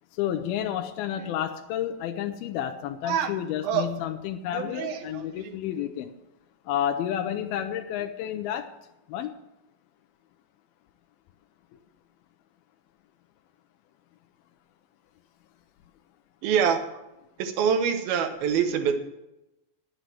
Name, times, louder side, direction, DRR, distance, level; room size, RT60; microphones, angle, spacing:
voice 1, 0.2-6.1 6.7-8.7 9.1-9.3, left 10 dB, 85° left, 5 dB, 2.6 m, -30 dB
voice 2, 4.5-5.5 16.4-16.8 17.4-19.0, right 7 dB, 80° right, 8 dB, 3.0 m, -26 dB
11.0 x 8.1 x 7.7 m, 0.93 s
omnidirectional pair, 4.2 m